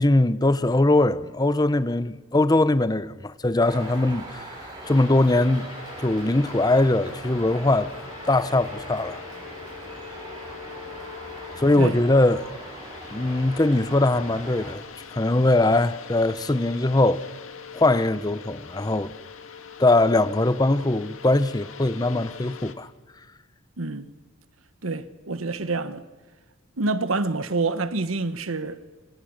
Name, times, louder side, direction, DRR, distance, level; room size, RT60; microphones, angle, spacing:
voice 1, 0.0-4.5 4.9-5.7 6.0-7.9 8.3-9.2 11.6-12.5 13.1-14.8 15.1-17.2 17.7-19.1 19.8-22.9, left 2 dB, 20° left, 0.7 m, -21 dB
sound 1, 3.6-14.7, right 1 dB, 20° right, 7.8 m, -40 dB
sound 2, 4.8-22.7, left 6 dB, 80° left, 2.0 m, -43 dB
voice 2, 23.8-24.1 24.8-26.0 26.8-28.8, right 3 dB, 85° right, 1.3 m, -27 dB
28.0 x 25.0 x 6.5 m
head